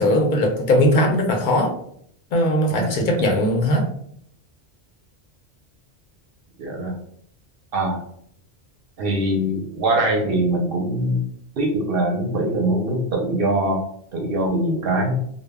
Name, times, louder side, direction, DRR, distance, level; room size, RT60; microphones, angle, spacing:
voice 1, 0.0-1.7 2.3-3.8, left 1 dB, 55° left, 2 dB, 0.6 m, -19 dB
voice 2, 6.6-7.0 7.7-8.0 9.0-11.3 11.6-13.8 14.1-15.2, right 1 dB, 65° right, 1 dB, 0.7 m, -22 dB
2.1 x 2.0 x 3.3 m, 0.65 s
omnidirectional pair, 1.1 m